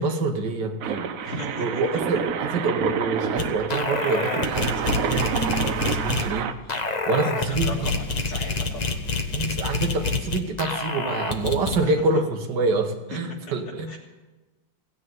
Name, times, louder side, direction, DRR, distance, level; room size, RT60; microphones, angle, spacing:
voice 1, 0.0-1.1 1.6-6.5 7.1-7.9 9.3-13.9, right 3 dB, 60° right, 5 dB, 1.7 m, -26 dB
sound 1, 0.8-6.5, right 7 dB, 90° right, 0.7 m, -28 dB
voice 2, 1.2-1.6 7.5-9.0 11.8-11.9 13.9-14.0, left 1 dB, 85° left, -4 dB, 2.9 m, -36 dB
sound 2, 3.4-3.5 3.7-6.3 6.7-11.8, left 4 dB, 65° left, 0.4 m, -27 dB
16.5 x 6.6 x 9.3 m, 1.2 s
omnidirectional pair, 2.4 m